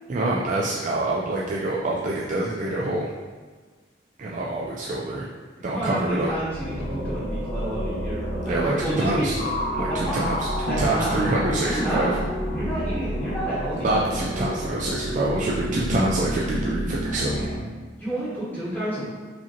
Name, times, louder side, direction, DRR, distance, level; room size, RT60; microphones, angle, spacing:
voice 1, 0.1-3.1 4.2-5.3 5.6-6.3 8.5-9.3 9.8-12.2 13.8-17.5, right 2 dB, 45° right, -4 dB, 0.4 m, -26 dB
voice 2, 5.7-9.3 9.9-10.1 10.7-12.1 12.5-14.1 18.0-19.0, right 1 dB, 10° left, -11 dB, 1.1 m, -29 dB
sound 1, 6.1-17.6, equal, 45° left, 1.3 m, -30 dB
4.8 x 2.8 x 2.9 m, 1.4 s
head